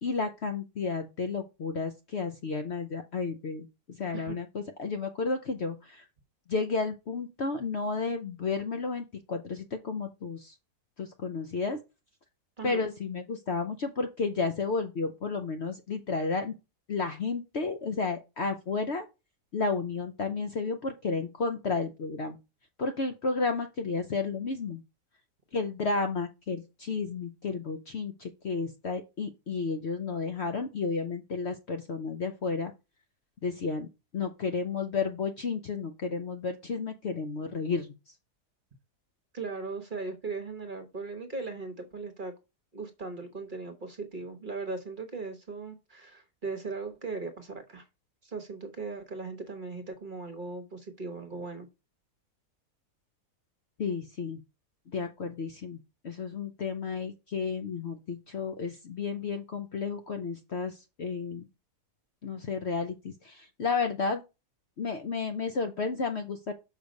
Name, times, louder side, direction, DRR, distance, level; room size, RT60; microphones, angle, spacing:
voice 1, 0.0-6.1 6.5-10.5 11.0-11.8 12.6-16.6 16.9-19.1 19.5-22.4 22.8-24.8 25.5-32.7 33.4-33.9 34.1-37.9 53.8-54.4 54.9-55.8 56.0-61.4 62.2-64.2 64.8-66.5, left 4 dB, 55° left, 0.8 m, -32 dB
voice 2, 39.3-42.3 42.7-47.9 48.2-51.7, right 3 dB, 35° right, 1.0 m, -38 dB
6.5 x 5.0 x 5.2 m
omnidirectional pair, 1.7 m